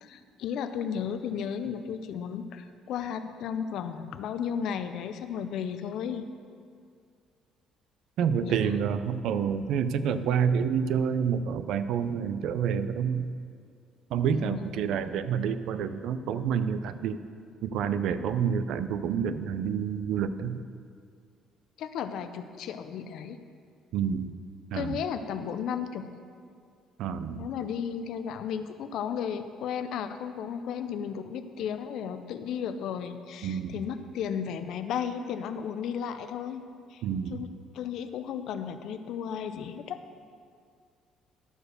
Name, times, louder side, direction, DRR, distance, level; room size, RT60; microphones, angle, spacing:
voice 1, 0.0-6.2 8.2-8.8 14.3-14.9 21.8-23.4 24.7-26.1 27.3-36.6 36.9-37.0 37.3-40.0, left 7 dB, 65° left, 9 dB, 0.6 m, -34 dB
voice 2, 8.2-13.3 14.1-17.2 17.6-20.6 23.9-24.3 24.7-25.0 27.0-27.5 33.4-33.7 37.0-37.4, right 7 dB, 70° right, 12 dB, 0.5 m, -28 dB
12.5 x 4.6 x 6.6 m, 2.2 s
cardioid pair, 130°, 0 cm